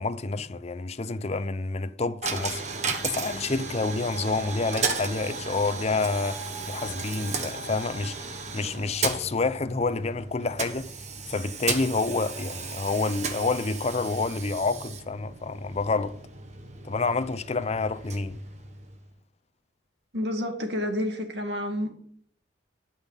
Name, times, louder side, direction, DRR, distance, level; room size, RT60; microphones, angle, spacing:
voice 1, 0.0-10.9 11.3-16.2 16.8-18.4, left 3 dB, 35° left, 0.5 m, -28 dB
Coin (dropping), 2.2-19.2, right 4 dB, 40° right, 1.3 m, -35 dB
voice 2, 20.1-21.9, left 1 dB, 65° right, 2.1 m, -29 dB
12.5 x 5.8 x 8.2 m
head